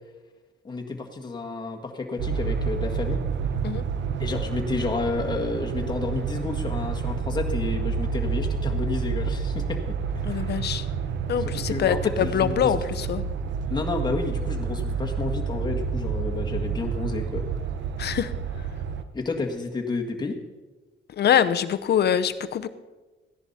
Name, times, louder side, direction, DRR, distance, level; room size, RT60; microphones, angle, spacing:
voice 1, 0.6-3.2 4.2-10.0 10.3-10.5 11.5-12.8 13.7-17.5 18.0-18.2 19.1-20.4, left 3 dB, 20° left, 0 dB, 1.7 m, -30 dB
sound 1, 2.2-19.0, right 6 dB, 65° right, 0.9 m, -29 dB
voice 2, 10.2-10.9 11.3-13.2 18.0-18.3 21.2-22.7, left 9 dB, 55° left, 12 dB, 0.7 m, -24 dB
15.0 x 10.5 x 4.2 m, 1.2 s
cardioid pair, 90°, 20 cm